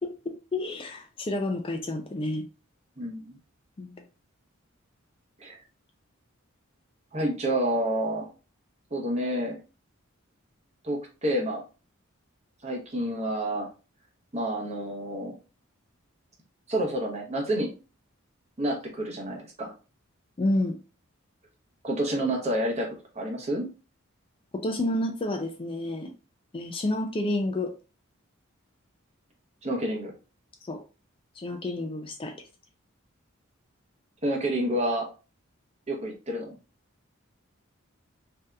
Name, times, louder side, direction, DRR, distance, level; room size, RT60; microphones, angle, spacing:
voice 1, 0.5-2.4 3.8-4.0 20.4-20.8 24.5-26.1 26.5-27.7 30.6-30.8 31.4-32.3, left 1 dB, 25° left, 5 dB, 0.3 m, -29 dB
voice 2, 3.0-3.4 5.4-5.6 7.1-8.3 8.9-9.6 10.8-11.6 12.6-13.7 14.3-15.3 16.7-17.7 18.6-19.7 21.8-22.9 23.1-23.7 29.6-30.1 34.2-35.1 35.9-36.5, right 1 dB, 30° right, 1 dB, 0.8 m, -29 dB
3.3 x 2.7 x 2.3 m, 0.33 s
head